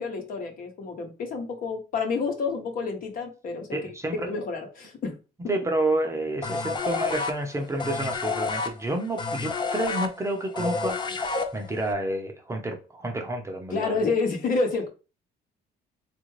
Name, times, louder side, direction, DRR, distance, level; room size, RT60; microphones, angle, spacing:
voice 1, 0.0-3.8 4.3-5.2 13.7-14.9, left 4 dB, 55° left, 1.0 m, -29 dB
voice 2, 3.7-4.3 5.5-11.2 11.5-14.0, right 1 dB, 15° right, 0.6 m, -29 dB
sound 1, 6.4-11.9, left 4 dB, 25° left, 0.5 m, -29 dB
3.4 x 2.5 x 3.1 m
cardioid pair, 110°, 17 cm